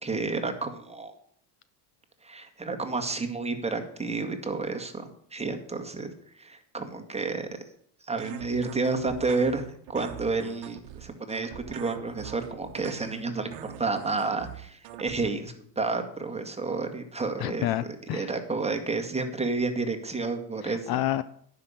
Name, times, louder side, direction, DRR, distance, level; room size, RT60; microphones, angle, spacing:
voice 1, 0.0-1.1 2.2-6.1 6.4-7.5 8.1-17.7 18.1-21.0, right 3 dB, 15° right, 4 dB, 2.0 m, -30 dB
sound 1, 8.2-15.3, right 11 dB, 65° right, 1.2 m, -43 dB
voice 2, 17.4-18.3 20.6-21.2, left 13 dB, 50° left, 15 dB, 0.6 m, -29 dB
10.5 x 5.9 x 8.6 m, 0.64 s
hypercardioid pair, 80°, 48 cm